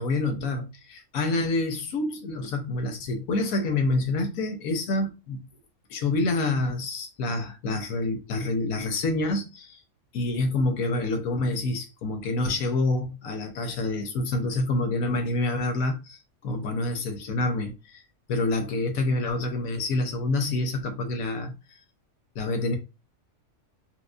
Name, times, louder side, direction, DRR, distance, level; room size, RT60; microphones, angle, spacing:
voice 1, 0.0-5.4 5.9-9.8 10.1-18.0 18.3-21.8 22.3-22.8, left 2 dB, 90° left, 1.2 m, -27 dB
4.4 x 2.3 x 2.5 m
omnidirectional pair, 1.4 m